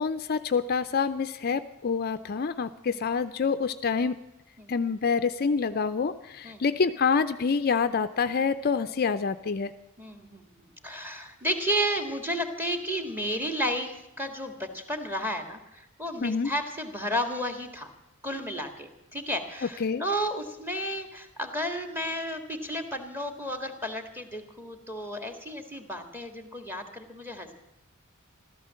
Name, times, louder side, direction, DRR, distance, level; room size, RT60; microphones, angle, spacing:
voice 1, 0.0-4.2 4.7-9.7 16.2-16.5 19.8-20.0, left 5 dB, 45° left, 11 dB, 0.5 m, -27 dB
voice 2, 10.0-10.5 10.8-17.9 18.2-27.5, equal, 10° right, 6 dB, 1.7 m, -32 dB
15.0 x 13.0 x 7.5 m, 0.91 s
head